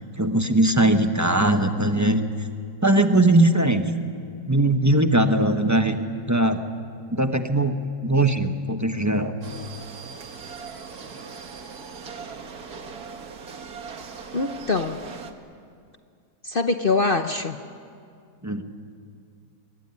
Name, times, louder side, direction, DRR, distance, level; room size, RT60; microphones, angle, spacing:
voice 1, 0.0-2.2 2.8-3.8 4.5-6.0 6.3-6.6 7.1-9.3 18.4-18.6, right 1 dB, 10° right, 7 dB, 1.0 m, -20 dB
sound 1, 9.4-15.3, right 5 dB, 65° right, 2.0 m, -39 dB
voice 2, 14.3-15.0 16.4-17.6, left 3 dB, 40° left, 7 dB, 0.8 m, -23 dB
25.5 x 23.0 x 9.9 m, 2.3 s
omnidirectional pair, 1.8 m